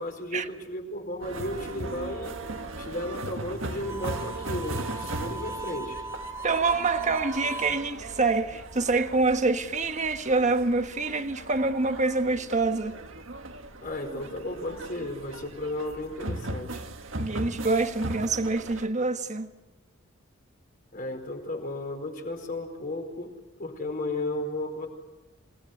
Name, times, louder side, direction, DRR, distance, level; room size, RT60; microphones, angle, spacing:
voice 1, 0.0-2.4 2.8-6.0 13.8-16.8 20.9-23.3 23.6-24.9, left 1 dB, 45° left, 4.7 m, -34 dB
sound 1, 1.2-18.9, right 2 dB, 80° right, 1.7 m, -38 dB
Harmonica, 3.8-7.8, right 2 dB, 15° right, 2.1 m, -39 dB
voice 2, 6.4-12.9 17.2-19.5, right 3 dB, 35° right, 1.4 m, -26 dB
27.5 x 19.5 x 9.6 m
head